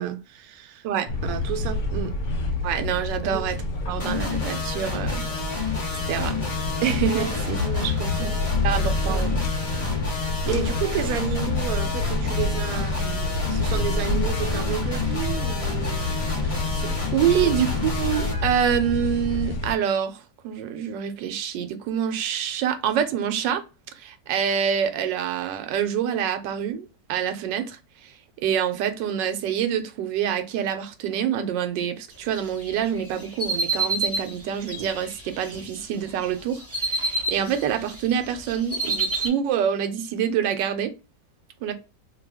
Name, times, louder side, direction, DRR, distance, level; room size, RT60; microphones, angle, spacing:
voice 1, 0.0-0.9 1.2-2.2 3.2-3.5 7.1-8.4 9.1-9.2 10.1-16.2 16.6-17.0 17.3-17.6, right 9 dB, 70° right, 0.9 m, -32 dB
sound 1, 1.1-19.7, left 2 dB, 65° left, 0.8 m, -28 dB
voice 2, 2.6-3.6 3.9-5.2 6.1-6.4 6.8-7.6 8.6-9.5 10.5-10.6 16.4-16.6 17.1-23.6 23.9-40.9 41.6-41.7, right 9 dB, 85° right, 1.2 m, -26 dB
sound 2, 4.0-18.3, left 4 dB, 30° left, 0.6 m, -30 dB
sound 3, 32.5-35.8 36.2-38.0 38.2-39.3, right 3 dB, 15° right, 0.6 m, -28 dB
2.8 x 2.3 x 3.3 m
omnidirectional pair, 1.9 m